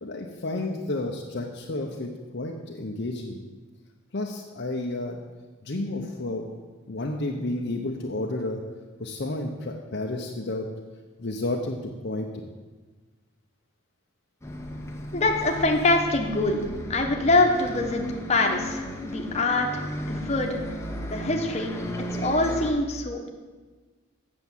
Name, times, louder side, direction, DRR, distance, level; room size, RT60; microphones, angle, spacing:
voice 1, 0.0-3.4 4.1-5.2 5.6-6.4 6.9-8.6 9.0-10.7 11.2-12.3, left 2 dB, 50° left, 0 dB, 0.8 m, -31 dB
Bus, 14.4-22.7, equal, 15° left, 0.8 m, -35 dB
voice 2, 15.1-16.6 16.9-18.0 18.3-20.5 21.1-21.7 22.2-23.3, left 2 dB, 30° left, 2 dB, 1.1 m, -24 dB
8.2 x 7.0 x 7.2 m, 1.3 s
head